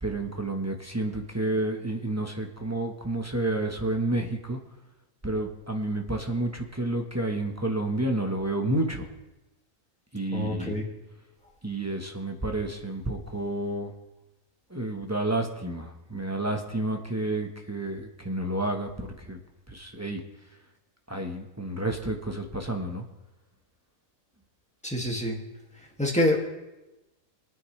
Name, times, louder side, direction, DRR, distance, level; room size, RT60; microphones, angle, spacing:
voice 1, 0.0-4.6 5.2-9.1 10.1-10.7 11.6-13.9 14.7-19.4 19.7-20.2 21.1-23.0, right 1 dB, 15° right, 3 dB, 1.0 m, -30 dB
voice 2, 10.3-10.8 24.8-25.4 26.0-26.4, left 1 dB, 5° left, -1 dB, 2.0 m, -26 dB
23.0 x 9.2 x 3.3 m, 1.0 s
omnidirectional pair, 1.4 m